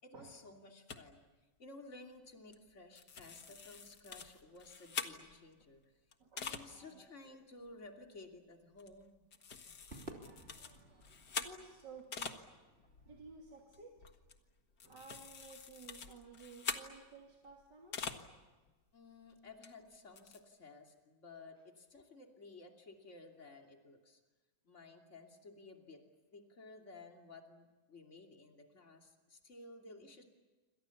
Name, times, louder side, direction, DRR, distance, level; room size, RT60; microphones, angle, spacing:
voice 1, 0.0-1.2 1.6-6.0 6.4-9.1 18.9-24.2 24.6-26.0 26.3-30.2, left 3 dB, 40° left, 2 dB, 3.2 m, -55 dB
sound 1, 0.9-1.0 2.5-2.7 3.0-5.5 6.1-6.7 7.2-7.3 7.6-7.9 8.8-9.1 9.3-12.4 12.7-18.3 18.7-18.8 19.6-19.7 19.9-20.4, left 5 dB, 70° left, 2.2 m, -45 dB
voice 2, 6.2-7.1 11.4-12.4 13.1-13.9 14.8-18.0, right 4 dB, 80° right, 0 dB, 3.4 m, -55 dB
Crowd / Fireworks, 9.9-14.4, right 1 dB, 35° right, 3.4 m, -56 dB
27.5 x 26.5 x 7.2 m, 1.2 s
omnidirectional pair, 1.9 m